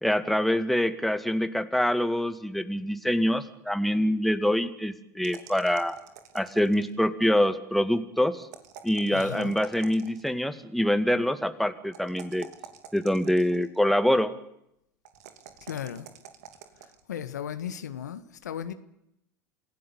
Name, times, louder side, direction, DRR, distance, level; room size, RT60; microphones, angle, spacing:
voice 1, 0.0-6.0 6.3-8.5 8.8-12.5 12.9-14.3, equal, ahead, 2.1 m, -25 dB
sound 1, 5.2-7.0 8.4-10.3 11.9-13.8 15.1-17.0, right 9 dB, 75° right, 2.7 m, -48 dB
voice 2, 9.1-9.5 15.6-16.1 17.1-18.7, left 9 dB, 90° left, 1.5 m, -36 dB
28.0 x 16.5 x 8.6 m
hypercardioid pair, 80°, 9 cm